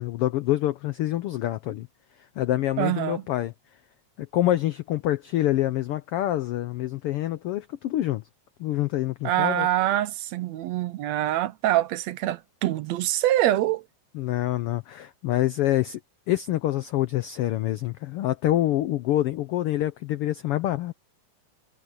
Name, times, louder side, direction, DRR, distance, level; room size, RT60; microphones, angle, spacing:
voice 1, 0.0-1.9 2.4-3.5 4.2-8.2 8.6-9.7 14.1-16.0 16.3-20.9, left 14 dB, 90° left, 1.2 m, -26 dB
voice 2, 2.8-3.2 9.2-13.9, right 13 dB, 75° right, 1.8 m, -25 dB
omnidirectional pair, 3.4 m